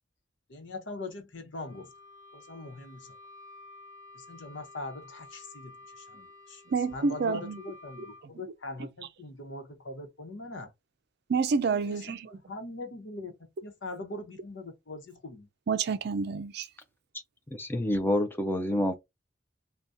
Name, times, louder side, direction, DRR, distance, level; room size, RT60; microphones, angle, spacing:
voice 1, 0.5-1.9 2.3-3.2 4.1-6.6 6.9-10.7 11.7-15.5, left 2 dB, 85° left, 1.0 m, -42 dB
Wind instrument woodwind instrument, 1.6-8.3, left 2 dB, 25° right, 1.0 m, -51 dB
voice 2, 6.7-7.6 11.3-12.3 15.7-16.7, right 5 dB, 60° right, 0.4 m, -28 dB
voice 3, 17.6-18.9, left 1 dB, 10° left, 0.5 m, -27 dB
2.7 x 2.3 x 3.4 m
head